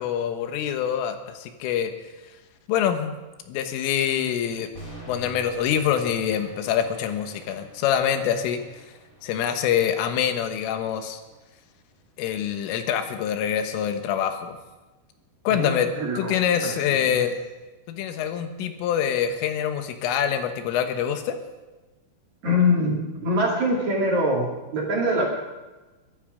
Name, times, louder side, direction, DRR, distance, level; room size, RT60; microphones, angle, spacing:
voice 1, 0.0-1.9 2.7-3.1 3.5-4.7 5.1-8.6 9.2-11.2 12.2-14.6 15.5-17.3 17.9-21.4, left 9 dB, 85° left, 7 dB, 3.8 m, -25 dB
sound 1, 4.7-12.8, right 1 dB, 20° left, 2.9 m, -47 dB
voice 2, 15.5-17.2 22.4-25.3, left 1 dB, 45° right, -2 dB, 3.2 m, -24 dB
23.0 x 11.5 x 5.0 m, 1.2 s
omnidirectional pair, 5.7 m